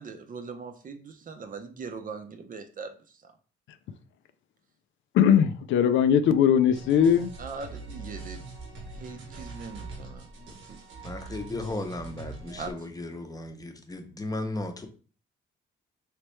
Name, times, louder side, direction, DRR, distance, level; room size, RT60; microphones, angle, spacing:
voice 1, 0.0-3.3 7.4-8.5 8.9-10.3 10.7-10.8 12.6-12.7, right 4 dB, 45° right, 0.6 m, -40 dB
voice 2, 5.1-7.3, left 8 dB, 75° left, 0.4 m, -20 dB
sound 1, 6.7-12.7, right 3 dB, 80° right, 1.1 m, -42 dB
voice 3, 11.0-14.9, left 2 dB, 20° left, 0.7 m, -35 dB
3.2 x 3.2 x 3.1 m
cardioid pair, 90°, 20 cm